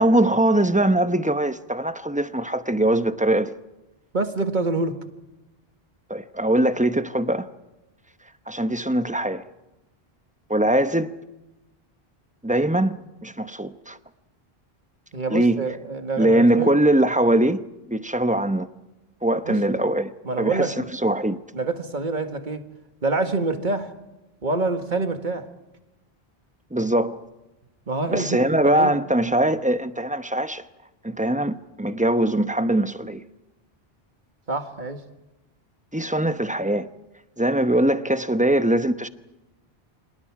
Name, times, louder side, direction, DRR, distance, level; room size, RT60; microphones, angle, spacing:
voice 1, 0.0-3.5 6.1-7.5 8.5-9.4 10.5-11.1 12.4-13.0 13.2-14.0 15.3-15.6 16.2-17.6 17.9-18.7 19.2-20.1 20.4-21.4 26.7-27.2 28.1-30.6 31.0-33.2 35.9-36.9 37.4-39.1, right 1 dB, 10° right, 0.8 m, -21 dB
voice 2, 4.1-5.0 15.1-16.8 19.5-19.8 20.2-20.9 21.5-22.6 23.0-23.9 24.4-25.5 27.9-29.0 34.5-35.0, right 3 dB, 50° right, 1.9 m, -26 dB
28.0 x 27.0 x 4.8 m
omnidirectional pair, 1.1 m